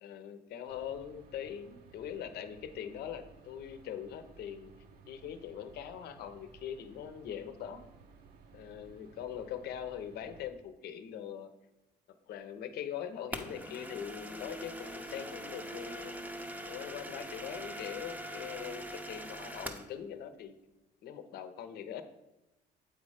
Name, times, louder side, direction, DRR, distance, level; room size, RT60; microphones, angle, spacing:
voice 1, 0.0-4.7 5.1-7.9 8.5-11.5 12.3-16.1 16.7-20.5 21.0-22.0, left 9 dB, 70° left, 10 dB, 0.7 m, -42 dB
sound 1, 0.7-10.5, right 4 dB, 65° right, 0.8 m, -57 dB
sound 2, 13.3-19.9, equal, 10° right, 0.7 m, -42 dB
8.2 x 4.2 x 4.9 m, 0.98 s
cardioid pair, 110°, 17 cm